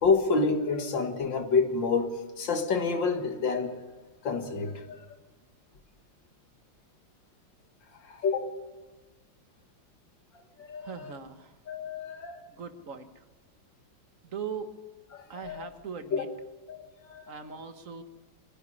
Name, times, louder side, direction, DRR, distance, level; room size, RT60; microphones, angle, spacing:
voice 1, 0.0-3.8 4.2-5.0 8.0-8.5 10.3-11.1 11.7-12.4 15.1-15.7 16.1-16.3 16.7-17.3, left 4 dB, 80° left, 2.5 m, -29 dB
voice 2, 10.8-11.6 12.5-13.2 14.2-14.7 15.3-16.3 17.3-18.0, right 6 dB, 45° right, 1.8 m, -40 dB
22.0 x 16.5 x 10.0 m
omnidirectional pair, 2.0 m